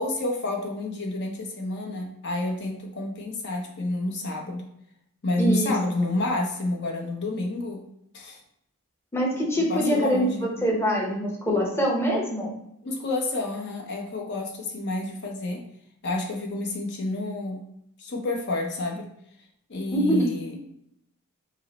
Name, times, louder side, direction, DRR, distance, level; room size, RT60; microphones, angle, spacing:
voice 1, 0.0-4.7 5.2-7.8 8.1-8.4 9.7-10.5 12.8-15.6 16.0-17.6 18.0-19.1 19.7-20.5, left 2 dB, 50° left, 1 dB, 0.8 m, -29 dB
voice 2, 5.4-5.7 9.1-12.5 19.9-20.3, equal, 10° left, -2 dB, 0.8 m, -24 dB
5.4 x 2.1 x 4.1 m, 0.74 s
head